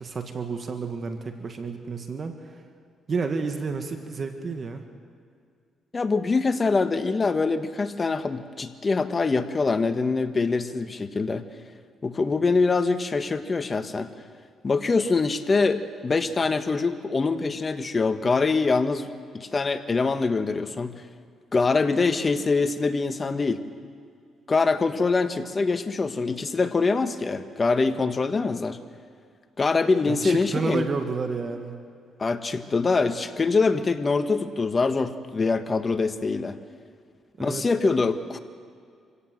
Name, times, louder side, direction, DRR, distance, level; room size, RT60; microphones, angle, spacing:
voice 1, 0.0-2.6 3.1-4.8 30.1-31.8 37.4-37.6, right 4 dB, 40° right, 6 dB, 1.8 m, -30 dB
voice 2, 5.9-11.4 12.0-14.1 14.6-19.1 19.3-21.0 21.5-23.6 24.5-28.8 29.6-30.9 32.2-36.6 37.4-38.4, left 4 dB, 30° left, 9 dB, 1.4 m, -24 dB
25.5 x 17.0 x 7.7 m, 2.2 s
cardioid pair, 90°, 0 cm